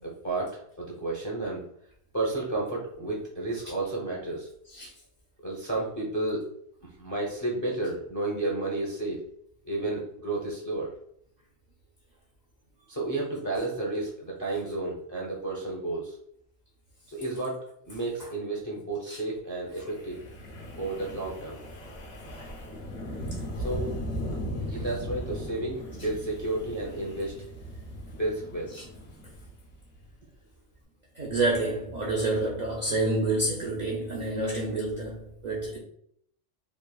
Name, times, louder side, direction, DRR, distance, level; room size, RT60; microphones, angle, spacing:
voice 1, 0.0-1.6 2.1-4.5 5.4-6.4 6.8-9.2 9.6-10.9 12.9-16.2 17.1-20.2 20.8-21.6 22.7-22.8 23.6-23.9 24.7-27.4 28.1-28.7 32.9-33.0, right 2 dB, 25° left, 0.4 m, -32 dB
Wind, 19.8-30.1, equal, 65° left, 0.8 m, -38 dB
voice 2, 31.1-35.8, right 2 dB, 60° right, 0.4 m, -29 dB
3.1 x 2.2 x 2.2 m
omnidirectional pair, 1.3 m